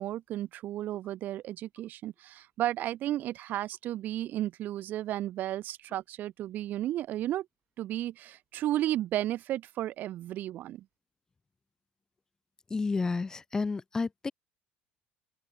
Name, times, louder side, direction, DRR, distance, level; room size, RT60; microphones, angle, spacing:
voice 1, 0.0-7.5 7.8-10.8, right 13 dB, 50° right, 5.0 m, -33 dB
voice 2, 12.7-14.3, left 4 dB, 15° left, 6.0 m, -31 dB
open air
cardioid pair, 155°, 4 cm